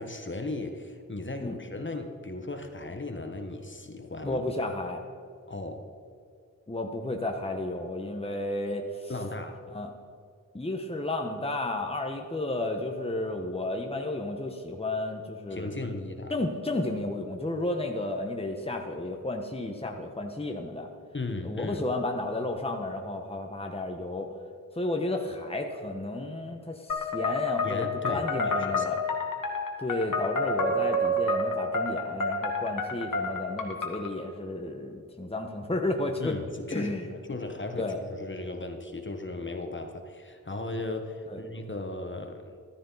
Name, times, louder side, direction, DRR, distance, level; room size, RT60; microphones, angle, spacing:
voice 1, 0.0-4.4 5.5-5.8 9.1-9.6 15.5-16.3 21.1-21.8 27.6-28.9 36.2-42.6, left 2 dB, 35° left, 5 dB, 1.3 m, -36 dB
voice 2, 4.2-5.0 6.7-9.1 9.7-9.9 10.5-15.8 16.3-20.9 21.4-24.3 24.7-29.0 29.8-36.4 36.7-37.0 37.8-38.0 41.3-41.4, left 2 dB, 20° left, 3 dB, 1.2 m, -32 dB
sound 1, 26.9-34.1, left 1 dB, 85° left, 1.6 m, -29 dB
14.0 x 13.0 x 4.1 m, 2.3 s
wide cardioid pair, 70°, 32 cm